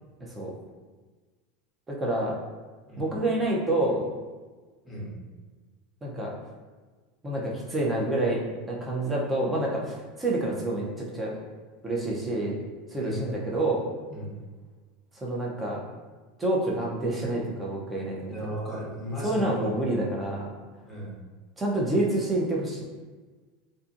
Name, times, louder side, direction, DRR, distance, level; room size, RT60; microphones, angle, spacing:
voice 1, 0.2-0.5 1.9-2.3 3.0-4.1 6.0-6.3 7.2-8.4 8.7-11.4 11.8-12.6 12.9-13.9 15.2-15.8 16.4-18.3 19.2-20.5 21.6-22.8, right 1 dB, 15° right, -3 dB, 0.5 m, -28 dB
voice 2, 18.3-19.7 20.8-21.2, equal, ahead, -6 dB, 0.9 m, -35 dB
2.6 x 2.5 x 2.4 m, 1.4 s
supercardioid pair, 140°, 0 cm